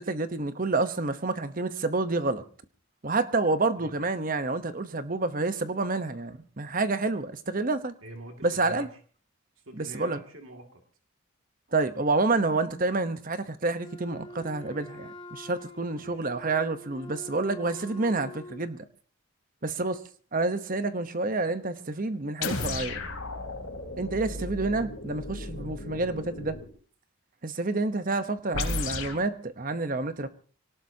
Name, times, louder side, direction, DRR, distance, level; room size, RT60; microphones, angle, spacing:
voice 1, 0.0-2.4 3.0-7.9 8.4-8.9 9.8-10.2 11.7-18.8 19.6-20.0 20.3-23.0 24.0-26.6 27.4-30.3, right 3 dB, 40° right, 1.0 m, -28 dB
voice 2, 8.0-8.9 9.7-10.8 16.0-16.3, right 1 dB, 70° right, 2.3 m, -45 dB
Wind instrument woodwind instrument, 13.8-18.7, left 1 dB, 25° left, 2.4 m, -45 dB
sound 1, 22.4-26.7 28.5-29.2, left 3 dB, 75° left, 3.4 m, -34 dB
24.5 x 18.5 x 2.8 m
head